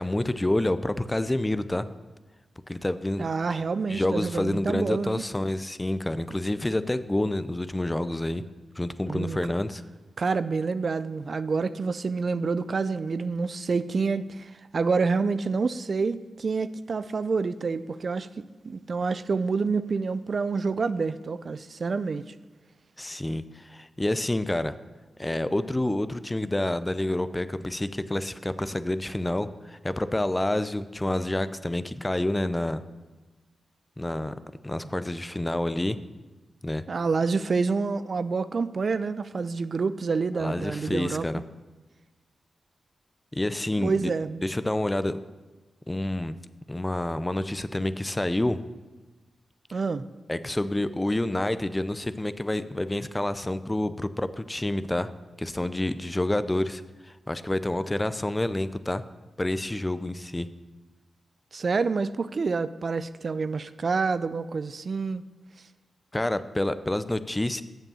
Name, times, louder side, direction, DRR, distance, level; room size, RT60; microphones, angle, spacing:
voice 1, 0.0-1.9 2.7-3.3 3.9-8.4 8.8-9.8 23.0-24.7 25.2-32.8 34.0-34.3 34.6-36.0 36.6-36.8 40.4-41.4 43.3-44.1 44.4-45.2 45.9-46.4 46.7-48.6 50.3-55.1 55.4-59.0 59.4-60.5 66.1-67.6, left 1 dB, 20° left, 13 dB, 0.5 m, -28 dB
voice 2, 3.2-5.2 9.1-9.4 10.2-22.2 36.9-41.3 43.8-44.4 49.7-50.1 61.5-65.2, right 4 dB, 60° right, 13 dB, 0.3 m, -28 dB
7.2 x 5.4 x 7.0 m, 1.2 s
cardioid pair, 55°, 0 cm